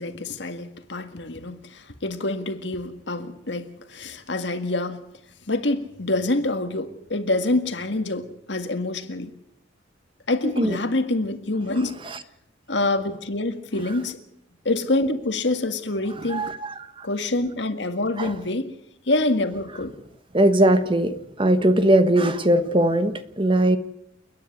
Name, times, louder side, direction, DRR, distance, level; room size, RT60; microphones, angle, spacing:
voice 1, 0.0-5.0 5.5-9.3 10.3-12.0 12.7-14.2 14.7-16.5 17.0-18.7 19.1-19.9, left 2 dB, 65° left, 1.8 m, -26 dB
voice 2, 16.2-17.1 18.2-18.3 20.3-23.8, right 1 dB, 25° right, 1.3 m, -20 dB
30.0 x 10.0 x 9.5 m
head